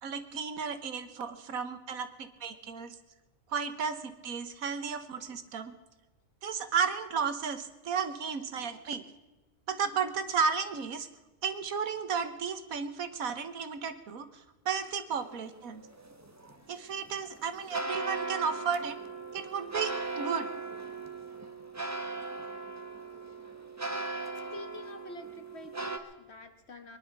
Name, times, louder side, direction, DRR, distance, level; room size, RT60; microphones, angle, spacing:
voice 1, 0.0-2.9 3.5-5.7 6.4-9.0 9.7-11.1 11.4-15.9 16.7-19.0 19.3-20.5, right 6 dB, 75° right, 10 dB, 1.5 m, -33 dB
sound 1, 15.1-26.0, right 3 dB, 15° right, 1.0 m, -38 dB
voice 2, 24.5-27.0, left 2 dB, 50° left, 7 dB, 1.6 m, -47 dB
22.0 x 11.0 x 6.0 m, 1.1 s
omnidirectional pair, 1.5 m